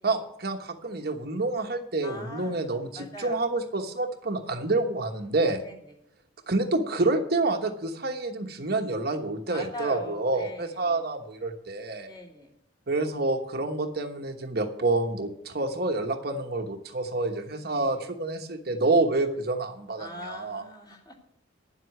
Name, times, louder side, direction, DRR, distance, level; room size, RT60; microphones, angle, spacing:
voice 1, 0.0-5.6 6.5-12.1 12.9-20.6, right 2 dB, 55° right, 5 dB, 1.2 m, -28 dB
voice 2, 2.0-2.7 2.9-3.4 5.6-5.7 9.5-11.0 12.1-12.5 17.6-18.1 20.0-21.1, equal, 20° left, 0 dB, 3.0 m, -41 dB
10.5 x 7.9 x 8.2 m, 0.68 s
head